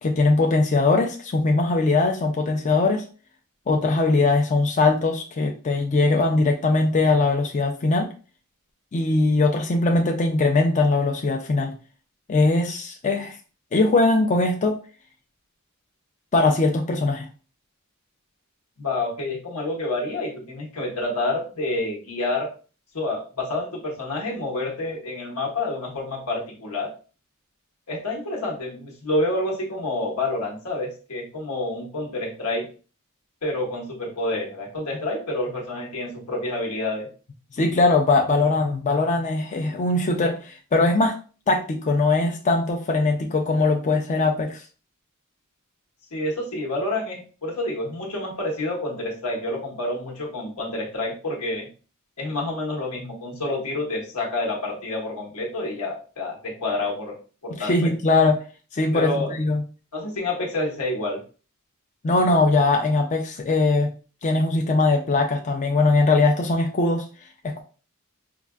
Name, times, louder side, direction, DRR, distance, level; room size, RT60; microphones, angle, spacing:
voice 1, 0.0-3.0 3.7-8.1 8.9-11.7 12.3-13.4 13.7-14.7 16.3-17.3 37.5-41.1 41.5-44.6 57.6-58.4 58.7-59.6 62.0-63.9 64.2-67.1 67.4-67.6, left 3 dB, 35° left, 2 dB, 0.4 m, -21 dB
voice 2, 18.8-22.5 22.9-26.9 27.9-32.7 33.4-37.1 46.1-51.7 52.2-57.2 57.4-57.9 58.9-59.3 59.9-61.2, left 2 dB, 90° left, 0 dB, 1.1 m, -28 dB
4.6 x 2.5 x 2.3 m, 0.36 s
head